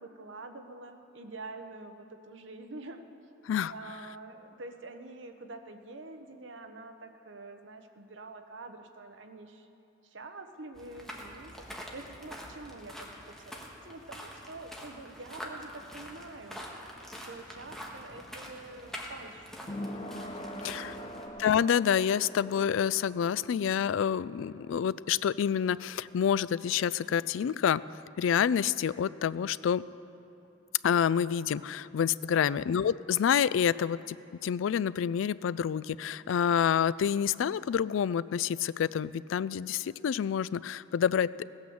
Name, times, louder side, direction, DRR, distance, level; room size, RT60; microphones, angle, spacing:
voice 1, 0.0-3.0 3.7-9.7 10.0-16.6 17.3-19.6 20.3-21.1 32.3-32.6, right 2 dB, 70° right, 6 dB, 1.0 m, -46 dB
sound 1, 10.7-21.3, equal, ahead, 1.4 m, -45 dB
sound 2, 17.0-28.1 28.4-28.5, left 1 dB, 30° left, 0.8 m, -45 dB
voice 2, 20.6-21.0 21.4-27.8 28.2-29.8 30.8-34.2 34.4-41.3, left 8 dB, 80° left, 18 dB, 0.3 m, -28 dB
17.5 x 9.0 x 7.1 m, 2.9 s
head